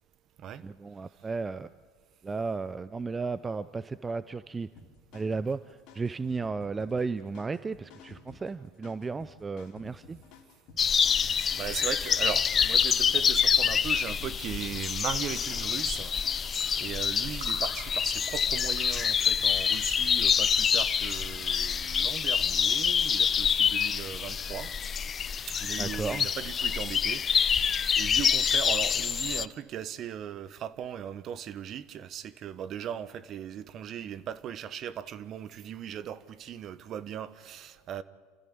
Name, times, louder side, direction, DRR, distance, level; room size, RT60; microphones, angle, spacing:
voice 1, 0.6-1.7 2.2-4.7 5.1-10.2 25.8-26.3, right 4 dB, 20° right, 0.6 m, -34 dB
sound 1, 4.8-16.6, left 4 dB, 55° left, 3.0 m, -53 dB
sound 2, 10.8-29.5, left 7 dB, 30° left, 0.6 m, -26 dB
voice 2, 11.0-24.7 25.5-38.0, right 9 dB, 45° right, 1.2 m, -38 dB
sound 3, 11.1-20.6, right 4 dB, 75° right, 5.5 m, -54 dB
28.5 x 14.0 x 8.7 m
hypercardioid pair, 85°, 0 cm